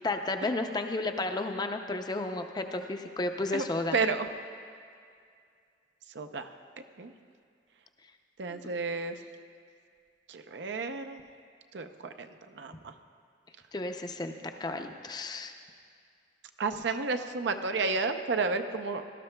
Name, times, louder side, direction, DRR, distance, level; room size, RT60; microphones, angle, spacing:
voice 1, 0.0-4.0 8.5-8.6 13.7-15.5, left 2 dB, 25° left, 5 dB, 0.5 m, -33 dB
voice 2, 3.9-4.3 6.1-6.5 7.0-7.1 8.4-9.2 10.3-11.2 11.7-12.3 12.5-12.9 16.6-19.0, right 4 dB, 80° right, 8 dB, 0.6 m, -31 dB
18.0 x 12.5 x 2.2 m, 2.3 s
head